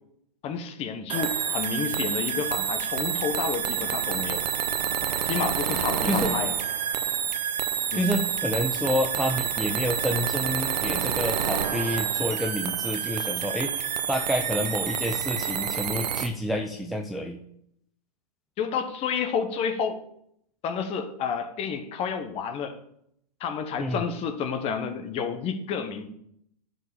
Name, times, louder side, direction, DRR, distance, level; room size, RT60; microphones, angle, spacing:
voice 1, 0.4-4.4 5.2-6.6 7.9-8.1 18.6-20.0 20.6-22.8 23.4-26.1, left 6 dB, 30° left, 8 dB, 1.2 m, -30 dB
sound 1, 1.1-16.3, right 8 dB, 80° right, 0.9 m, -28 dB
voice 2, 6.1-6.4 7.9-17.4 23.8-24.0, equal, ahead, 2 dB, 0.4 m, -29 dB
10.5 x 4.9 x 6.6 m, 0.73 s
hypercardioid pair, 125°, 21 cm